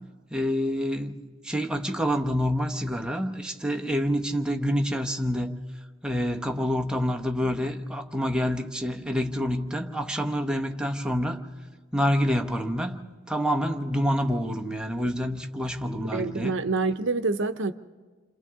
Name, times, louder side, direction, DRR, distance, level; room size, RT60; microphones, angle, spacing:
voice 1, 0.3-5.6 6.0-11.4 11.9-13.0 13.3-16.6, equal, 5° right, 3 dB, 0.9 m, -27 dB
voice 2, 16.1-17.7, right 3 dB, 60° right, 11 dB, 0.8 m, -26 dB
28.5 x 26.5 x 3.7 m, 1.4 s
head